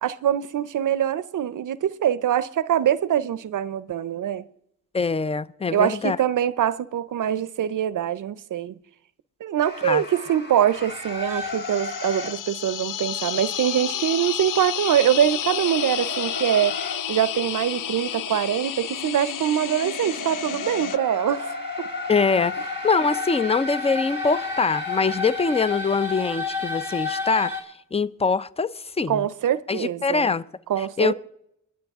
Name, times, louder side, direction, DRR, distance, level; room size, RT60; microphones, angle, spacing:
voice 1, 0.0-4.4 5.7-8.7 9.4-16.7 17.1-21.9 29.1-30.3 30.7-31.1, right 10 dB, 75° right, 0.6 m, -24 dB
voice 2, 4.9-6.2 9.8-10.0 22.1-27.6 27.9-28.7 29.0-29.2 29.7-30.4 30.8-31.1, left 4 dB, 20° left, 0.5 m, -23 dB
sound 1, 9.6-12.4 15.6-17.0 18.7-27.6, left 4 dB, 35° left, 3.0 m, -32 dB
sound 2, 11.2-21.0, left 10 dB, 75° left, 0.5 m, -31 dB
22.0 x 8.6 x 3.5 m
cardioid pair, 75°, 32 cm